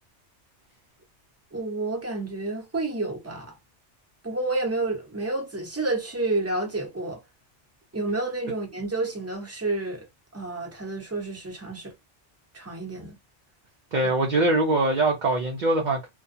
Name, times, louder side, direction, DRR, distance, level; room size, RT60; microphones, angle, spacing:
voice 1, 1.5-3.6 4.2-7.2 7.9-10.1 10.3-11.9 12.5-13.2 14.0-14.1, right 2 dB, 15° right, 0.8 m, -30 dB
voice 2, 13.9-16.1, right 2 dB, 50° right, 0.6 m, -23 dB
2.4 x 2.3 x 2.6 m
omnidirectional pair, 1.2 m